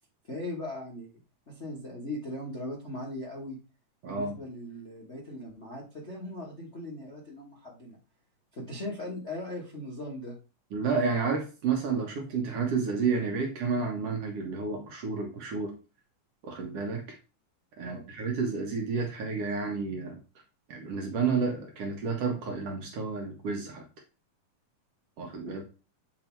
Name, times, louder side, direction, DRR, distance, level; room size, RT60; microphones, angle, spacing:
voice 1, 0.3-1.1 1.5-3.6 4.1-8.0 8.5-10.4 17.8-18.0 25.4-25.5, left 1 dB, 40° left, -4 dB, 1.0 m, -39 dB
voice 2, 4.0-4.4 10.7-15.7 16.4-17.2 17.8-20.2 20.7-23.8 25.2-25.6, right 5 dB, 60° right, 2 dB, 1.9 m, -30 dB
8.4 x 3.4 x 4.5 m, 0.33 s
omnidirectional pair, 3.6 m